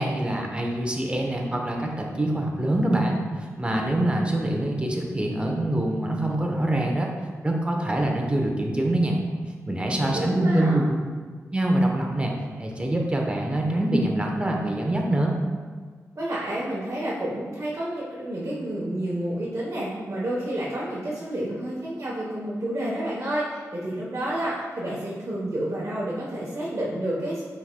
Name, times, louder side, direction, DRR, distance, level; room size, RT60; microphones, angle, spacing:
voice 1, 0.0-3.2 3.6-7.1 7.4-9.2 9.7-10.9 11.5-15.4, right 1 dB, 20° right, 0 dB, 0.8 m, -24 dB
voice 2, 10.0-10.8 16.1-27.4, right 1 dB, 55° right, -7 dB, 1.0 m, -30 dB
5.6 x 4.2 x 2.2 m, 1.5 s
cardioid pair, 50°, 6 cm